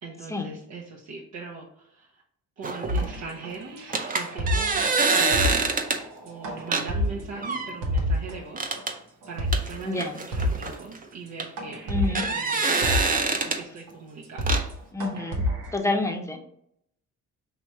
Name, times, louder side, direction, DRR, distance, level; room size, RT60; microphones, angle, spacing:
voice 1, 0.0-2.1 2.6-4.8 5.1-5.7 6.2-8.7 9.3-13.0 13.5-14.6, right 4 dB, 65° right, -2 dB, 0.8 m, -40 dB
sound 1, 2.6-3.1 3.9-6.0 6.7-6.9 7.4-7.8 8.6-8.9 9.5-11.0 11.4-11.5 12.0-13.6 14.4-14.6, right 4 dB, 30° right, 0.6 m, -25 dB
sound 2, 2.9-8.4 8.8-8.9 9.2-9.7 10.0-10.1 10.3-10.8 11.3-11.4 11.6-13.4 13.9-14.0 14.2-14.7 15.0-15.8, left 1 dB, 90° right, 1.1 m, -29 dB
voice 2, 9.9-10.2 11.9-12.3 14.9-15.4 15.7-16.4, left 2 dB, 10° left, 3 dB, 0.7 m, -28 dB
3.0 x 3.0 x 4.6 m, 0.74 s
cardioid pair, 90°, 30 cm